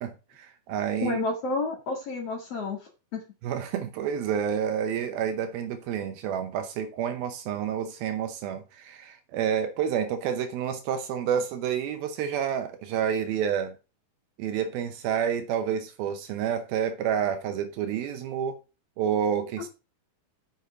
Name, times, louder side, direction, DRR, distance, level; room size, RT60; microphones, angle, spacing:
voice 1, 0.0-1.2 3.4-13.8 14.4-18.6 19.0-19.7, right 8 dB, 75° right, 2.5 m, -29 dB
voice 2, 1.0-2.8 3.1-3.2, left 3 dB, 45° left, 2.4 m, -30 dB
8.3 x 6.7 x 4.9 m
omnidirectional pair, 4.7 m